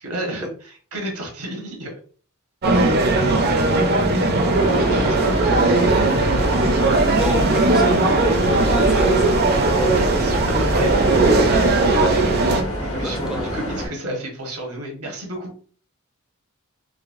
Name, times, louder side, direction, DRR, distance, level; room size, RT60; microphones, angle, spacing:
voice 1, 0.0-2.0 4.9-5.4 8.4-8.8 9.5-12.2 12.7-15.5, equal, 75° right, 1 dB, 1.1 m, -30 dB
sound 1, 2.6-12.6, right 2 dB, 45° right, 0.6 m, -18 dB
sound 2, 4.5-13.9, equal, 65° left, 1.2 m, -27 dB
voice 2, 7.1-8.0 8.7-9.4 13.0-13.5, equal, ahead, 1 dB, 0.5 m, -30 dB
4.7 x 2.1 x 2.5 m, 0.43 s
head